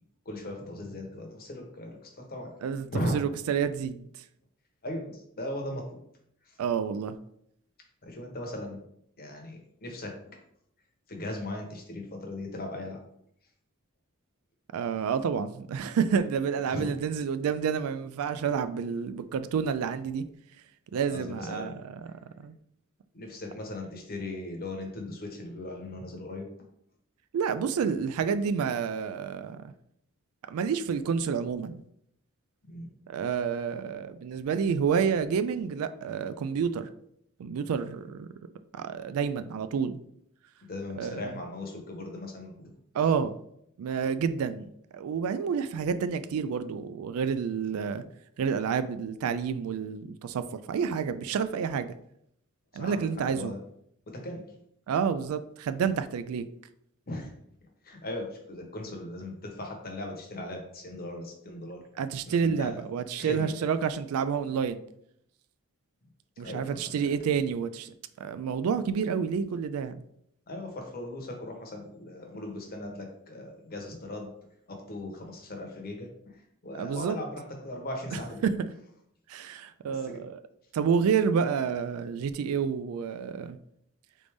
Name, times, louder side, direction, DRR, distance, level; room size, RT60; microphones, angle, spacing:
voice 1, 0.2-2.5 2.9-3.2 4.8-5.9 6.5-6.6 8.0-8.8 9.2-10.1 11.1-13.0 16.7-16.9 21.1-21.8 23.1-26.5 32.6-32.9 40.7-42.7 52.7-53.6 54.1-54.4 57.1-57.3 57.8-61.8 62.3-62.8 63.2-63.6 66.4-67.1 70.5-74.3 74.7-78.4 79.9-80.2, left 1 dB, 45° left, 2 dB, 0.9 m, -38 dB
voice 2, 3.1-4.1 6.6-7.2 14.7-20.2 20.9-22.0 22.4-22.6 27.3-29.7 30.5-31.8 33.1-36.9 37.4-38.3 38.7-40.0 41.0-41.2 42.9-43.3 43.8-48.0 48.4-51.9 52.7-53.5 54.9-56.5 62.0-64.8 66.4-70.0 76.8-77.2 79.3-80.4 80.7-83.6, right 6 dB, 70° right, 12 dB, 0.3 m, -29 dB
3.9 x 3.3 x 3.4 m, 0.72 s
head